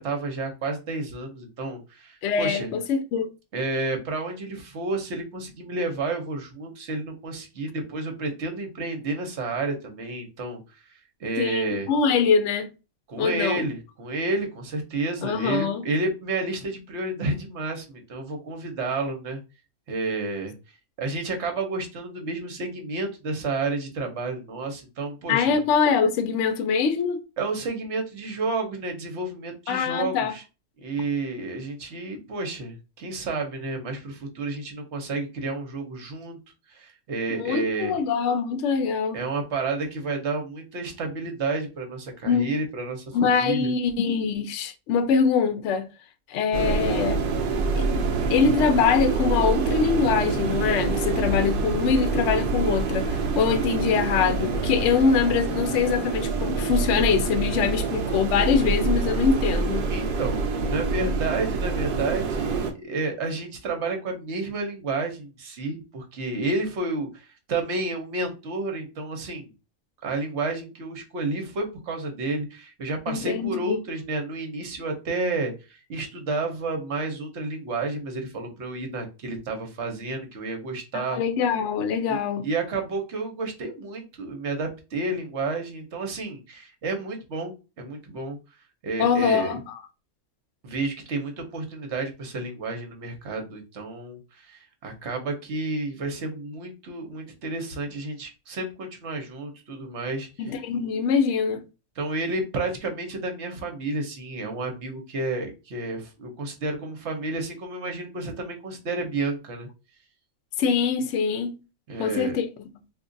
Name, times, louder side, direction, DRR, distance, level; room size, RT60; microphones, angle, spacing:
voice 1, 0.0-2.7 3.5-11.9 13.1-19.4 19.9-20.5 21.0-25.6 27.4-30.4 30.8-36.4 36.7-38.0 39.1-43.7 59.9-69.5 70.0-81.2 82.1-88.4 88.8-89.6 90.6-100.6 102.0-109.7 111.9-112.4, right 3 dB, 55° right, 1.0 m, -31 dB
voice 2, 2.2-3.3 11.4-12.7 13.2-13.6 15.2-15.9 25.3-27.2 29.7-30.3 37.3-39.2 42.2-42.5 43.1-45.9 46.3-47.2 47.8-47.9 48.3-59.8 73.1-73.8 80.9-82.5 89.0-89.6 100.4-101.6 110.6-111.6 112.0-112.5, left 6 dB, 65° left, 0.8 m, -23 dB
sound 1, 46.5-62.7, right 4 dB, 75° right, 0.4 m, -26 dB
2.5 x 2.3 x 3.7 m
omnidirectional pair, 1.5 m